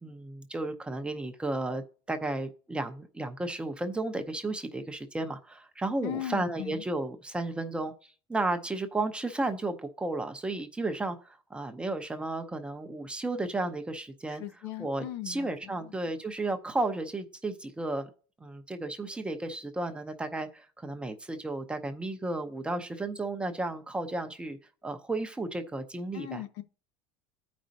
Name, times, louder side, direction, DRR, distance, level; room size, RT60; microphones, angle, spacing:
voice 1, 0.0-14.4 14.8-18.1 18.4-24.6 24.8-26.4, right 2 dB, 10° right, 0.7 m, -33 dB
voice 2, 6.0-6.8 14.3-15.9 26.1-26.6, left 12 dB, 65° left, 0.9 m, -38 dB
13.5 x 5.2 x 2.8 m
cardioid pair, 150°, 13 cm